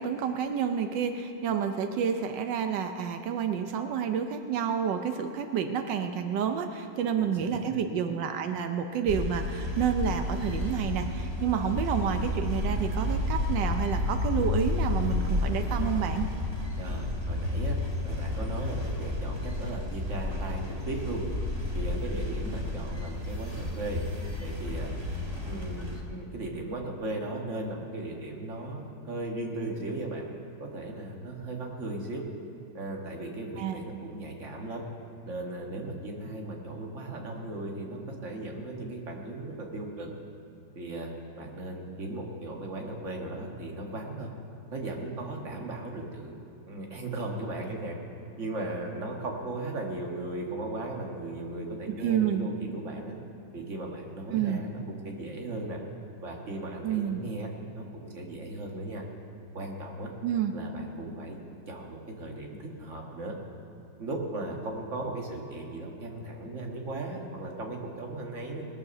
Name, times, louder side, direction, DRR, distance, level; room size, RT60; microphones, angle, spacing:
voice 1, 0.0-16.3 33.6-33.8 52.0-52.5 54.3-54.6 56.8-57.2 60.2-60.5, right 8 dB, 90° right, 7 dB, 1.4 m, -29 dB
voice 2, 7.2-7.7 16.8-17.8 18.0-21.2 21.7-24.0 24.4-24.9 25.5-30.3 30.6-32.2 32.7-34.8 35.2-40.1 40.8-44.3 44.7-46.4 46.7-48.0 48.4-53.1 53.5-55.8 56.2-57.5 57.8-59.0 59.5-60.1 60.5-61.4 61.7-63.3 64.0-68.7, right 2 dB, 45° right, 0 dB, 1.9 m, -37 dB
sound 1, 9.1-26.0, left 2 dB, 15° right, 1.4 m, -31 dB
20.0 x 6.9 x 6.8 m, 2.8 s
omnidirectional pair, 1.9 m